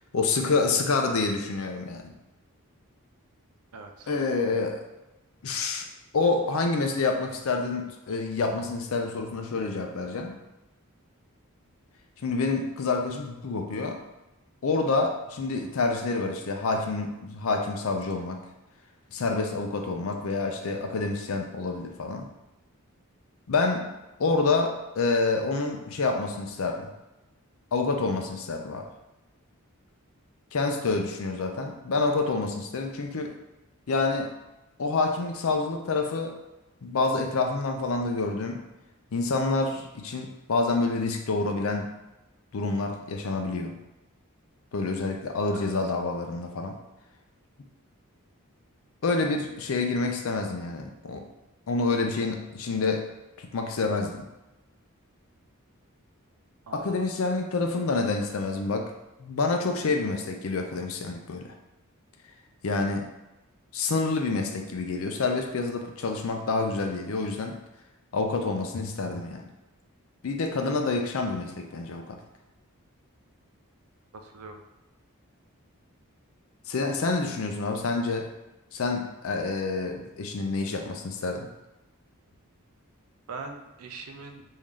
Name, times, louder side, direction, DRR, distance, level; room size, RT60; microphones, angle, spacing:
voice 1, 0.1-2.1 4.1-4.9 5.4-5.9 6.1-10.4 12.2-14.0 14.6-18.4 19.1-22.3 23.5-23.9 24.2-26.9 27.7-28.9 30.5-33.4 33.9-34.3 34.8-36.4 36.8-38.6 39.1-41.9 42.5-43.8 44.7-46.8 49.0-51.3 51.7-53.1 53.4-54.3 56.7-58.9 59.2-61.5 62.6-63.1 63.7-67.6 68.1-69.5 70.2-72.2 76.7-78.3 78.7-81.5, left 3 dB, 65° left, 4 dB, 0.5 m, -28 dB
voice 2, 3.7-4.1 45.5-45.7 56.7-57.0 74.1-74.6 83.3-84.4, right 4 dB, 80° right, 5 dB, 0.5 m, -42 dB
3.1 x 2.7 x 3.7 m, 1.0 s
head